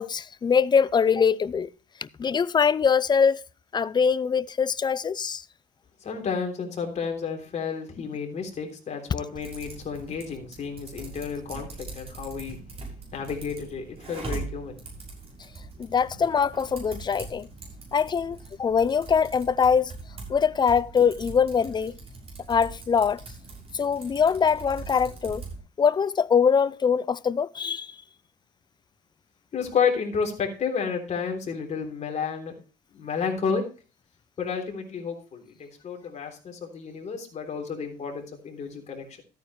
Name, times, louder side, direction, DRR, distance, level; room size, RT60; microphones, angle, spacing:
voice 1, 0.0-1.7 2.2-3.4 3.7-5.4 15.8-17.5 17.9-19.9 20.3-21.9 22.5-23.2 23.7-25.4 25.8-27.9, left 6 dB, 25° left, 0.5 m, -23 dB
voice 2, 6.0-12.6 13.1-14.8 29.5-32.5 32.9-33.6 34.4-39.2, left 6 dB, 45° left, 3.5 m, -31 dB
Typing, 9.3-25.6, right 3 dB, 35° right, 6.3 m, -41 dB
13.5 x 9.2 x 3.2 m
cardioid pair, 110°, 17 cm